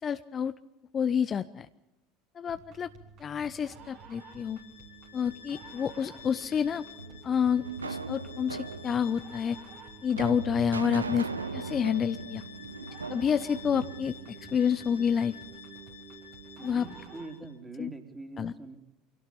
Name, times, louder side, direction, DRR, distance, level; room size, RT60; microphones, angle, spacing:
voice 1, 0.0-0.5 0.9-1.7 2.3-2.9 3.2-4.6 5.1-6.9 7.2-9.6 10.0-12.4 13.1-14.2 14.5-15.4 16.6-16.8 17.8-17.9 18.4-18.5, left 7 dB, 30° left, 12 dB, 0.7 m, -29 dB
sound 1, 2.5-17.4, right 7 dB, 50° right, 4.2 m, -51 dB
Bowed string instrument, 3.7-17.6, left 9 dB, 80° left, 3.1 m, -51 dB
sound 2, 7.0-15.1, right 4 dB, 80° right, 0.9 m, -39 dB
voice 2, 16.6-18.8, right 3 dB, 10° right, 5 dB, 3.5 m, -44 dB
25.5 x 17.5 x 8.6 m, 0.95 s
figure-of-eight pair, 70°, 0 cm